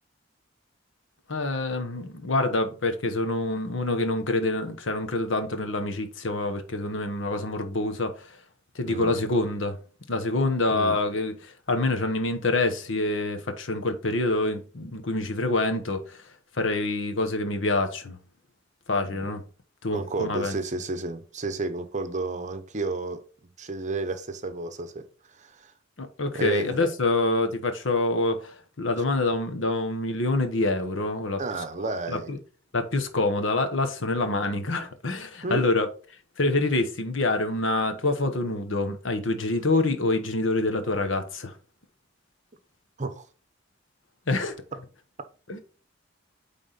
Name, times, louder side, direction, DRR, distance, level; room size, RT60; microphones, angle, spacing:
voice 1, 1.3-8.3 8.7-9.8 10.1-16.2 16.6-18.2 18.9-19.4 19.8-20.5 26.0-31.4 32.1-32.4 32.7-35.9 36.4-41.5 44.3-44.6 45.5-45.6, left 2 dB, 75° left, 1.2 m, -26 dB
voice 2, 8.9-9.2 10.7-11.0 19.0-19.3 19.9-23.2 23.6-25.0 25.4-25.5 26.3-26.8 31.4-32.3 35.4-35.6 43.0-43.2, right 2 dB, 40° right, 0.9 m, -31 dB
8.9 x 3.7 x 4.1 m
head